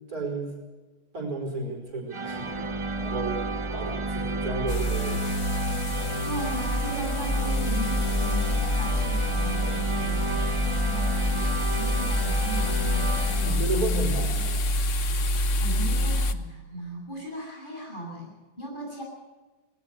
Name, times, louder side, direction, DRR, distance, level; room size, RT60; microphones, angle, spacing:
voice 1, 0.1-0.5 1.1-2.7 2.9-3.4 3.7-5.3 13.4-14.7, right 2 dB, 55° right, 1 dB, 5.6 m, -32 dB
sound 1, 2.1-14.1, right 2 dB, 25° right, 0.7 m, -31 dB
sound 2, 4.7-16.3, left 2 dB, 50° left, 1.3 m, -27 dB
voice 2, 6.0-13.1 15.3-19.0, equal, 30° left, -2 dB, 7.9 m, -37 dB
20.0 x 19.5 x 6.7 m, 1.3 s
omnidirectional pair, 1.8 m